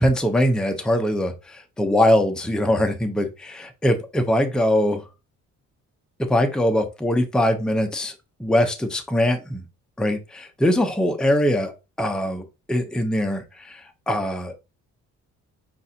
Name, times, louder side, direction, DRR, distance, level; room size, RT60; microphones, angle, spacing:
voice 1, 0.0-5.0 6.2-8.1 8.4-9.6 10.0-14.6, left 1 dB, 5° left, 6 dB, 0.6 m, -22 dB
5.3 x 2.5 x 2.7 m, 0.28 s
cardioid pair, 90°, 30 cm